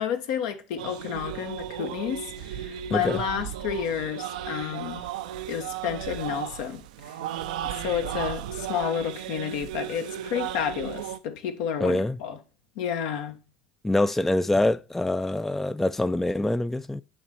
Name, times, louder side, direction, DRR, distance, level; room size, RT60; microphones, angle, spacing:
voice 1, 0.0-5.0 5.5-7.2 7.7-12.4 12.8-13.4, left 8 dB, 70° left, 1.0 m, -31 dB
sound 1, 0.8-11.2, right 11 dB, 75° right, 0.4 m, -35 dB
voice 2, 11.8-12.2 13.8-17.0, left 1 dB, 5° left, 0.3 m, -25 dB
8.6 x 3.0 x 4.4 m
hypercardioid pair, 75°, 4 cm